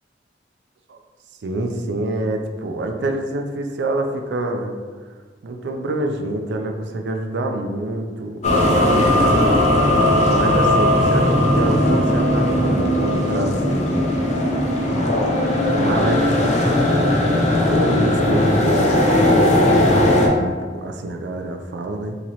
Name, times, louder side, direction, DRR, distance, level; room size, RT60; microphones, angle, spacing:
voice 1, 1.4-4.7 5.4-9.6 10.3-14.2 15.7-16.9 17.6-22.2, right 2 dB, 70° right, 4 dB, 0.4 m, -26 dB
sound 1, 8.4-20.3, left 1 dB, 40° left, 0.6 m, -17 dB
3.0 x 2.9 x 3.9 m, 1.6 s
head